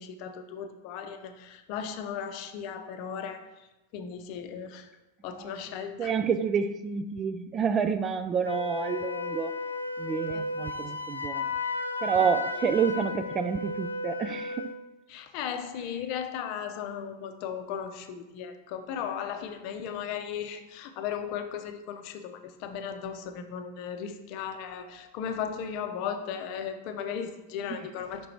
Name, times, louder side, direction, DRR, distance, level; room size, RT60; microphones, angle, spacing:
voice 1, 0.0-3.7 3.9-4.9 5.2-6.1 10.3-10.4 10.7-10.9 15.1-28.3, left 8 dB, 45° left, 7 dB, 0.6 m, -36 dB
voice 2, 6.0-9.5 10.0-11.5 12.0-14.7, right 6 dB, 25° right, 10 dB, 0.4 m, -29 dB
Wind instrument woodwind instrument, 8.4-14.8, left 3 dB, 85° left, 0.5 m, -34 dB
5.9 x 5.0 x 4.4 m, 1.0 s
figure-of-eight pair, 90°, 0 cm